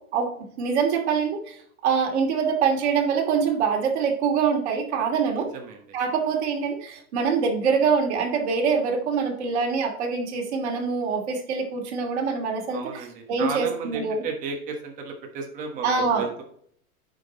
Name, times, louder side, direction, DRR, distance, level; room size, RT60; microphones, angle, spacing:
voice 1, 0.6-1.6 1.8-5.5 5.9-14.2 15.8-16.3, right 5 dB, 50° right, 1 dB, 2.5 m, -24 dB
voice 2, 5.3-5.8 12.7-16.4, right 5 dB, 15° right, 3 dB, 1.2 m, -34 dB
9.0 x 5.8 x 4.0 m, 0.62 s
hypercardioid pair, 160°, 44 cm